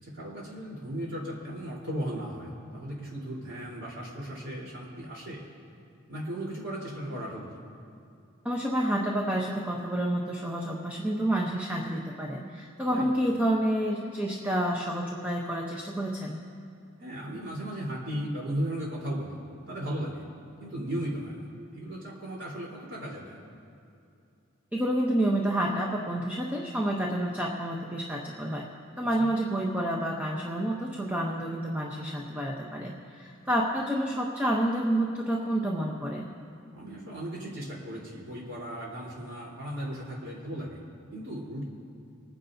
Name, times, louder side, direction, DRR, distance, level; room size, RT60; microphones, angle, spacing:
voice 1, 0.0-5.4 6.1-7.5 12.9-13.1 17.0-19.4 19.7-20.2 20.6-21.5 21.7-23.4 29.2-29.3 36.7-40.8 41.1-41.6, equal, 65° right, -5 dB, 3.7 m, -36 dB
voice 2, 8.4-16.4 24.7-28.7 29.0-36.2, right 1 dB, 10° right, -2 dB, 0.8 m, -29 dB
28.0 x 10.0 x 2.7 m, 2.5 s
head